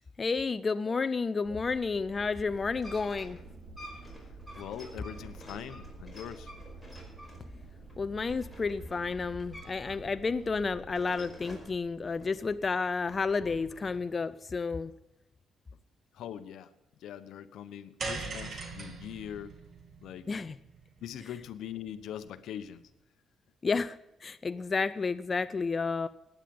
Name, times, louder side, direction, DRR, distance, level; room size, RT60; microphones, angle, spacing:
voice 1, 0.2-3.4 8.0-14.9 20.3-20.6 23.6-26.1, left 4 dB, 35° left, 13 dB, 0.5 m, -31 dB
sound 1, 1.4-13.5 14.6-14.9, right 3 dB, 60° right, 4.1 m, -50 dB
sound 2, 2.6-10.0 10.3-11.8 12.2-14.0, equal, ahead, 5.2 m, -50 dB
voice 2, 4.5-6.5 16.1-16.7 17.0-19.5 20.0-20.3 21.0-22.8, left 10 dB, 80° left, 12 dB, 0.9 m, -42 dB
sound 3, 18.0-22.4, right 3 dB, 45° right, 2.6 m, -42 dB
15.5 x 10.0 x 5.3 m, 0.88 s
cardioid pair, 90°, 0 cm